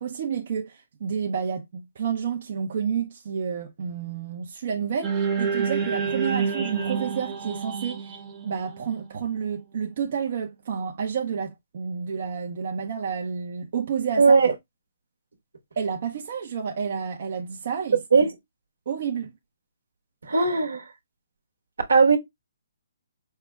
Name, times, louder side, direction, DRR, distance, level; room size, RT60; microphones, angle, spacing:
voice 1, 0.0-8.1 8.4-14.4 15.8-18.0 18.9-19.3, right 7 dB, 50° right, 0.7 m, -30 dB
sound 1, 5.0-9.4, right 6 dB, 20° right, 0.9 m, -28 dB
voice 2, 14.2-14.5 18.1-18.3 20.2-20.8 21.9-22.2, right 4 dB, 80° right, 1.1 m, -18 dB
5.5 x 2.1 x 3.4 m
hypercardioid pair, 145°, 0 cm